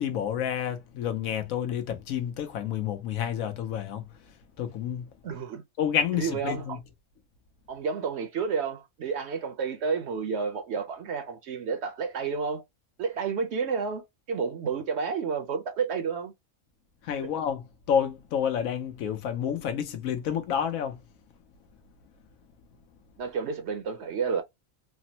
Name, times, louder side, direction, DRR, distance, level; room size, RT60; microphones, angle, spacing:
voice 1, 0.0-4.0 4.6-5.1 5.8-6.8 17.0-21.0, left 8 dB, 80° left, 1.1 m, -29 dB
voice 2, 5.2-5.6 6.1-6.8 7.7-12.6 13.0-16.3 23.2-24.4, right 5 dB, 65° right, 0.8 m, -30 dB
3.4 x 2.1 x 2.6 m
omnidirectional pair, 1.4 m